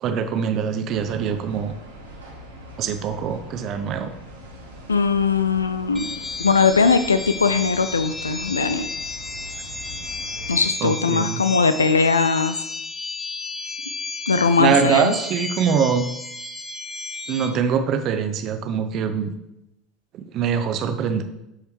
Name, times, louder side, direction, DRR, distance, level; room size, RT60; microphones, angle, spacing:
voice 1, 0.0-1.7 2.8-4.1 10.8-11.4 14.6-16.1 17.3-19.3 20.1-21.2, right 7 dB, 45° right, 8 dB, 0.8 m, -23 dB
sound 1, 0.9-10.7, right 1 dB, 80° right, 1.4 m, -42 dB
voice 2, 4.9-6.1 6.4-8.9 10.5-12.6 14.3-15.1, left 5 dB, 80° left, 12 dB, 0.4 m, -20 dB
sound 2, 5.9-17.5, left 3 dB, 5° left, 1.1 m, -33 dB
12.5 x 4.8 x 3.1 m, 0.88 s
figure-of-eight pair, 70°, 0 cm